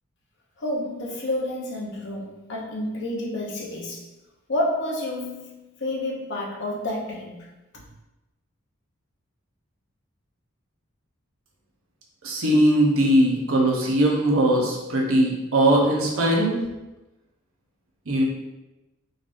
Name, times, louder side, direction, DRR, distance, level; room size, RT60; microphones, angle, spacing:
voice 1, 0.6-4.1 4.5-7.5 7.7-7.8, left 1 dB, 55° left, -2 dB, 0.7 m, -29 dB
voice 2, 12.2-16.6 18.1-18.2, right 1 dB, 80° right, -1 dB, 0.9 m, -20 dB
3.9 x 3.3 x 2.5 m, 1.0 s
head